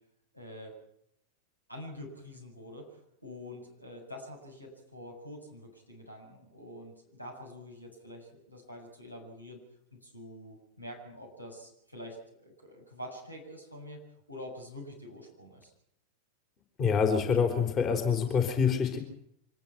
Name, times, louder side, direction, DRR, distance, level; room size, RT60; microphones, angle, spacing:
voice 1, 0.3-0.7 1.7-9.6 9.9-14.0 14.3-15.7, left 1 dB, 90° left, 2 dB, 7.5 m, -46 dB
voice 2, 16.8-19.0, left 6 dB, 30° left, 5 dB, 4.3 m, -26 dB
25.5 x 20.0 x 6.0 m, 0.73 s
figure-of-eight pair, 90°, 0 cm